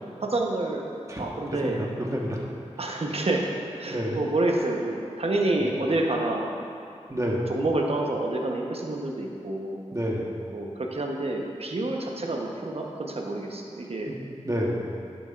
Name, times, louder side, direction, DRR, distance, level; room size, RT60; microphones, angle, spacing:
voice 1, 0.2-0.9 1.2-1.8 2.8-3.5 3.8-6.6 7.2-9.8 10.5-14.1, right 2 dB, 55° right, 0 dB, 1.0 m, -28 dB
voice 2, 1.6-2.4 3.9-4.2 7.1-7.5 9.9-10.3 14.1-14.2 14.4-14.8, equal, 25° right, -2 dB, 1.3 m, -29 dB
11.0 x 7.0 x 2.5 m, 2.4 s
cardioid pair, 40°, 12 cm